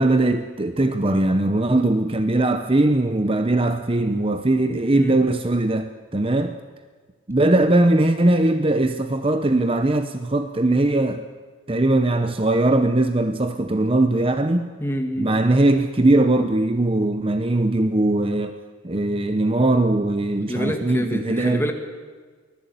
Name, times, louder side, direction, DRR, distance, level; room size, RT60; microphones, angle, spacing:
voice 1, 0.0-6.6 7.3-11.2 11.7-14.7 15.2-18.5 18.8-21.7, right 2 dB, 25° right, 9 dB, 0.8 m, -20 dB
voice 2, 14.8-15.3 20.5-21.7, equal, 10° left, 4 dB, 2.1 m, -27 dB
24.0 x 18.5 x 8.4 m, 1.5 s
head